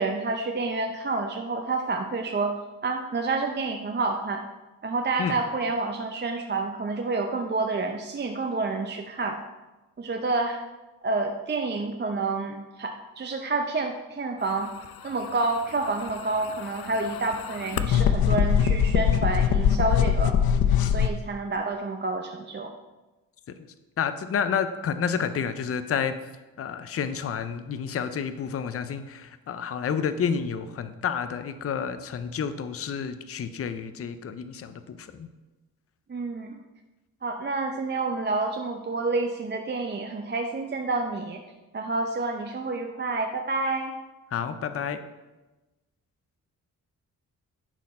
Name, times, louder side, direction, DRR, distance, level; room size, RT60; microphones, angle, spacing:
voice 1, 0.0-2.5 2.8-4.4 4.8-9.4 10.0-10.6 11.0-14.7 15.0-20.3 20.8-22.7 36.1-36.6 37.2-41.4 41.7-43.9, right 3 dB, 30° right, 3 dB, 0.6 m, -29 dB
sound 1, 15.9-21.1, left 8 dB, 90° left, 0.5 m, -22 dB
voice 2, 24.0-26.2 26.6-35.3 44.3-45.0, left 7 dB, 40° left, 11 dB, 0.5 m, -30 dB
10.5 x 4.1 x 4.2 m, 1.1 s
cardioid pair, 105°, 35 cm